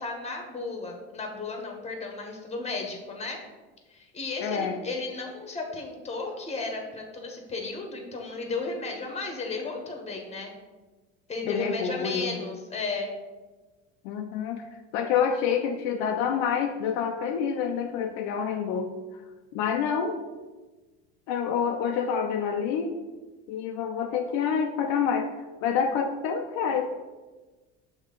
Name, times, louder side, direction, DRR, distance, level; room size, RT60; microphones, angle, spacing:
voice 1, 0.0-3.4 3.9-10.5 11.3-13.1, left 3 dB, 20° left, 2 dB, 1.4 m, -34 dB
voice 2, 4.4-4.8 11.5-12.4 14.0-19.2 19.5-20.2 21.3-23.0 23.5-25.3 25.6-26.9, left 7 dB, 65° left, 4 dB, 0.6 m, -27 dB
6.3 x 3.1 x 5.4 m, 1.2 s
supercardioid pair, 95°, 30 cm